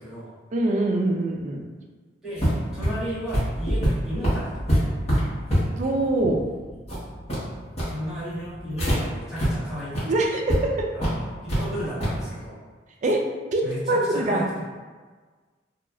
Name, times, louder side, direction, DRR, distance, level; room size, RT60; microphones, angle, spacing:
voice 1, 0.0-0.3 2.2-2.4 2.7-4.9 7.8-9.9 10.9-12.6 13.6-14.6, equal, ahead, -12 dB, 1.0 m, -34 dB
voice 2, 0.5-1.6 5.8-6.4 10.0-10.9 13.0-13.2 13.5-14.5, right 2 dB, 40° right, 1 dB, 0.4 m, -23 dB
sound 1, 2.4-9.0 9.4-9.5 9.8-10.0 10.5-10.6 11.0-11.6 12.0-12.2, equal, 35° left, 1.0 m, -25 dB
2.9 x 2.3 x 2.3 m, 1.4 s
head